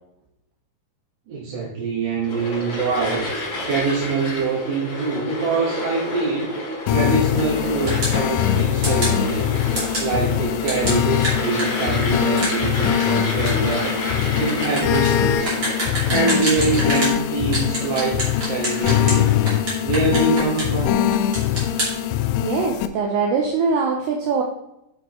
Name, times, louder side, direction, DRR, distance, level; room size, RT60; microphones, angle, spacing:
voice 1, 1.3-3.3 3.6-6.5 6.9-9.5 10.0-14.0 14.4-15.6 16.1-19.4 19.8-21.0, right 3 dB, 75° right, -7 dB, 4.0 m, -24 dB
sound 1, 2.2-19.5, left 1 dB, 40° left, 2.7 m, -30 dB
sound 2, 6.9-22.9, left 11 dB, 85° left, 2.9 m, -22 dB
sound 3, 7.9-8.2 8.8-9.2 9.8-10.1 10.7-17.2 17.5-19.2 19.5-20.8 21.1-21.9, right 1 dB, 30° right, 2.8 m, -27 dB
voice 2, 22.4-24.4, right 5 dB, 90° right, 1 dB, 2.3 m, -22 dB
8.0 x 7.4 x 3.1 m, 0.84 s
omnidirectional pair, 5.6 m